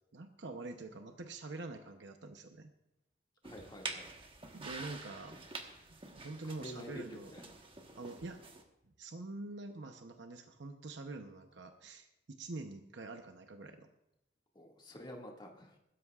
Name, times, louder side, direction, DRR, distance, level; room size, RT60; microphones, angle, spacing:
voice 1, 0.1-2.7 4.5-5.3 5.9-7.3 8.0-8.4 9.0-13.9, right 2 dB, 70° right, 6 dB, 0.8 m, -46 dB
voice 2, 3.4-4.1 6.4-7.4 14.5-15.8, left 1 dB, 25° left, -1 dB, 2.1 m, -49 dB
sound 1, 3.4-8.6, right 3 dB, 30° right, 1.2 m, -47 dB
21.5 x 12.5 x 2.4 m, 0.86 s
head